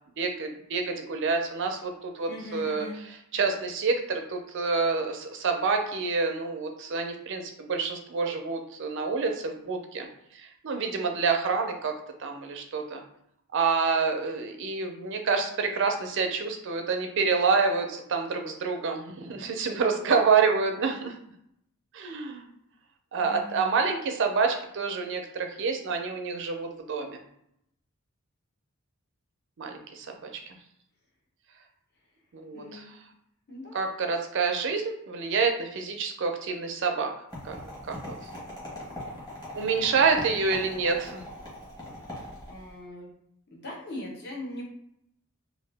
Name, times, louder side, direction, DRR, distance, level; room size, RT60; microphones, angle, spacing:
voice 1, 0.2-10.1 10.4-11.9 12.2-13.0 13.5-21.1 21.9-22.5 23.1-27.2 29.6-30.3 32.3-32.8 33.7-37.1 37.4-37.6 37.9-38.1 39.6-41.2, right 4 dB, 55° right, 4 dB, 0.5 m, -27 dB
voice 2, 2.3-3.0 23.2-23.7 32.5-32.9 33.5-33.8 42.5-43.1 43.5-44.6, left 1 dB, 50° left, -3 dB, 0.9 m, -40 dB
sound 1, 37.3-42.7, left 1 dB, 20° left, 1.1 m, -41 dB
2.8 x 2.5 x 3.3 m, 0.75 s
head